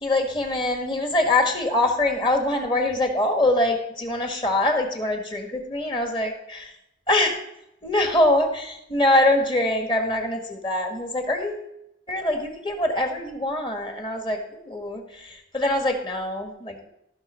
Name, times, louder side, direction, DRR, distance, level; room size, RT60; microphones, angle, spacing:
voice 1, 0.0-6.7 7.1-7.3 7.8-11.6 12.1-14.4 14.6-16.9, left 1 dB, 25° left, 3 dB, 1.6 m, -23 dB
16.5 x 6.0 x 4.4 m, 0.81 s
head